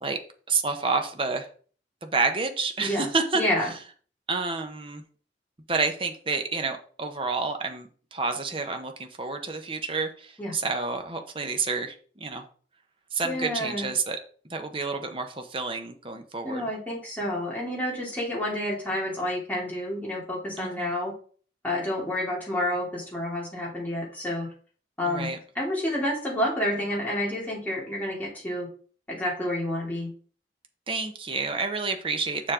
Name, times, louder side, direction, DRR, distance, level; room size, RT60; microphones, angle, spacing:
voice 1, 0.5-1.5 2.0-3.4 4.3-5.0 5.7-12.4 13.1-14.2 14.5-16.7 20.6-20.9 25.1-25.4 30.9-32.5, right 4 dB, 30° right, 6 dB, 0.9 m, -29 dB
voice 2, 3.3-3.7 10.4-10.5 13.2-13.9 16.4-21.1 21.6-24.5 25.0-25.3 25.5-28.7 29.1-30.1, left 1 dB, 10° left, -5 dB, 2.8 m, -29 dB
6.8 x 6.4 x 3.7 m, 0.43 s
head